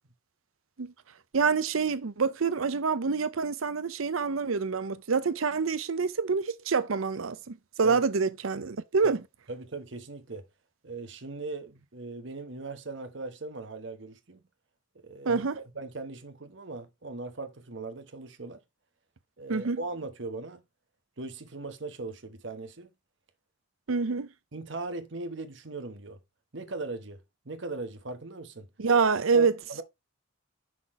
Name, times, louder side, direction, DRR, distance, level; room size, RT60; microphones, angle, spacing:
voice 1, 1.3-9.2 15.3-15.6 19.5-19.8 23.9-24.3 28.8-29.5, right 5 dB, 90° right, 0.7 m, -26 dB
voice 2, 9.5-10.5 10.8-14.4 15.0-15.4 15.7-18.6 19.4-20.6 21.2-22.9 24.5-26.2 26.5-28.7 29.3-29.8, right 3 dB, 65° right, 1.2 m, -39 dB
6.0 x 4.0 x 4.8 m
head